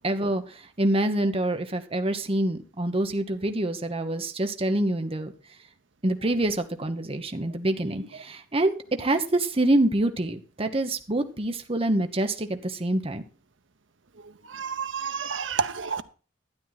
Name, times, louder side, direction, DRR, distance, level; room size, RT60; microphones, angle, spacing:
voice 1, 0.0-5.3 6.0-13.2, right 1 dB, 30° right, 1.1 m, -26 dB
voice 2, 14.5-16.0, right 6 dB, 70° right, 0.9 m, -29 dB
12.5 x 9.3 x 4.0 m
head